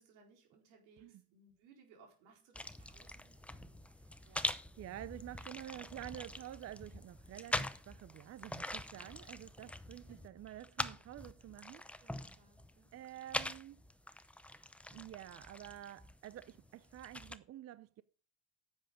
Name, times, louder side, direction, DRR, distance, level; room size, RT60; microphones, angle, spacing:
voice 1, 0.0-3.9 4.2-4.6 10.0-10.3 12.0-13.1, right 4 dB, 85° right, 4.4 m, -65 dB
sound 1, 2.5-17.4, left 1 dB, 5° left, 0.7 m, -44 dB
voice 2, 4.8-11.8 12.9-13.8 14.9-18.0, right 13 dB, 45° right, 0.6 m, -49 dB
10.0 x 8.1 x 5.1 m
supercardioid pair, 90°, 36 cm